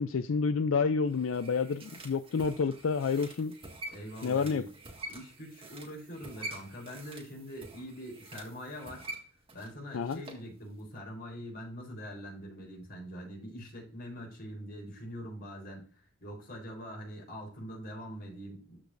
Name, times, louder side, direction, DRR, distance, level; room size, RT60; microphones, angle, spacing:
voice 1, 0.0-3.5 4.2-4.6 9.9-10.2, left 5 dB, 85° left, 0.4 m, -29 dB
sound 1, 1.1-10.5 10.8-10.9, right 2 dB, 30° right, 1.9 m, -47 dB
voice 2, 3.9-4.7 5.1-9.0 9.5-15.9 16.2-18.8, equal, 50° left, 4.2 m, -43 dB
13.5 x 4.8 x 2.6 m
head